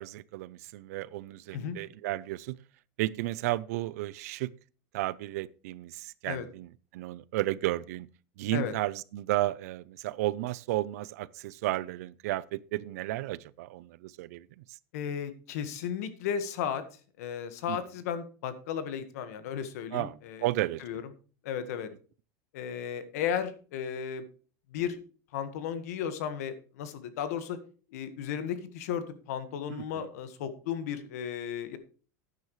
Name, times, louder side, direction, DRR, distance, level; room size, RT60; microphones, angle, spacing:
voice 1, 0.0-2.6 3.0-4.5 4.9-8.1 8.4-14.5 17.7-17.8 19.9-20.8 29.7-30.1, right 17 dB, 80° right, 0.5 m, -33 dB
voice 2, 14.9-16.8 17.2-20.5 20.8-21.0 21.4-21.9 22.5-24.2 24.7-25.0 25.3-27.6 27.9-31.8, left 8 dB, 80° left, 1.6 m, -34 dB
12.0 x 9.5 x 3.2 m
supercardioid pair, 165°, 8 cm